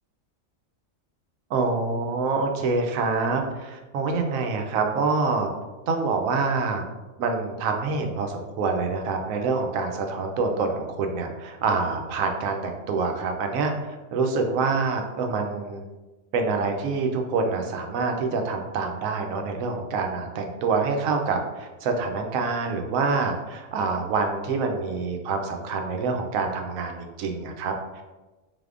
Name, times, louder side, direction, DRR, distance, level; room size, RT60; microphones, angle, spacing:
voice 1, 1.5-5.5 5.9-6.8 7.2-15.8 16.3-28.0, right 4 dB, 80° right, 4 dB, 1.0 m, -26 dB
4.0 x 3.4 x 2.4 m, 1.2 s
omnidirectional pair, 1.4 m